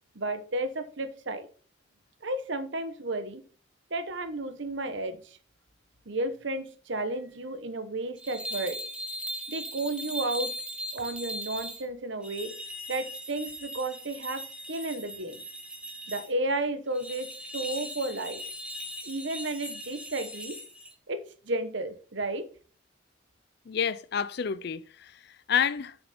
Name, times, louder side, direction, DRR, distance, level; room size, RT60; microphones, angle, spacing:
voice 1, 0.1-1.5 2.2-3.4 3.9-5.4 6.1-8.8 9.5-10.5 10.9-12.5 12.9-15.4 16.1-17.3 17.5-18.4 19.0-20.6 21.1-22.4, right 2 dB, 65° right, 1.0 m, -33 dB
sound 1, 8.2-11.8 12.2-16.3 16.9-20.9, equal, 5° right, 1.2 m, -39 dB
voice 2, 23.7-26.0, left 7 dB, 55° left, 0.4 m, -29 dB
7.3 x 6.3 x 4.2 m
head